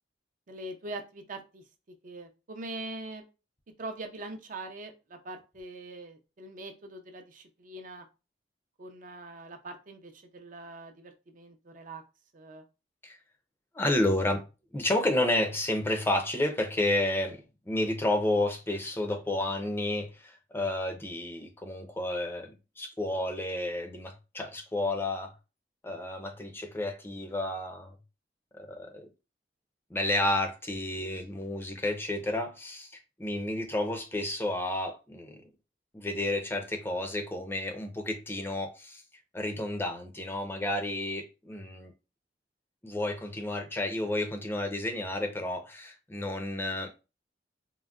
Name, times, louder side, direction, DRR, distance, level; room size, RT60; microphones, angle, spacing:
voice 1, 0.5-1.6 2.0-3.2 3.8-8.1 8.8-12.0 12.3-12.6, right 2 dB, 50° right, 0.5 m, -42 dB
voice 2, 13.7-14.4 14.7-22.5 22.8-25.3 25.8-27.9 28.5-29.1 29.9-32.9 33.2-35.4 35.9-39.0 39.3-41.9 42.8-46.9, left 1 dB, 15° left, 0.5 m, -31 dB
3.7 x 2.1 x 2.3 m
head